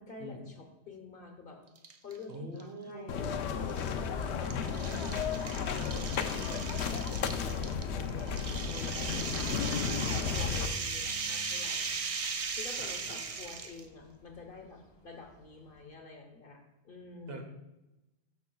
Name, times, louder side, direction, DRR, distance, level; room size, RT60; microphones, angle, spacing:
voice 1, 0.0-1.6 2.0-9.5 9.8-12.0 12.5-17.4, left 4 dB, 55° left, 3 dB, 1.2 m, -49 dB
sound 1, 1.8-2.2 2.6-2.7 3.7-13.8, right 5 dB, 45° right, 0.5 m, -38 dB
voice 2, 2.3-3.4 9.7-10.5 12.8-13.5 17.3-17.4, right 1 dB, 60° right, 3 dB, 1.3 m, -45 dB
sound 2, 3.1-10.7, left 6 dB, 75° left, 0.9 m, -33 dB
sound 3, 8.9-15.9, left 2 dB, 25° left, 0.9 m, -52 dB
12.5 x 5.9 x 2.3 m, 0.99 s
omnidirectional pair, 1.1 m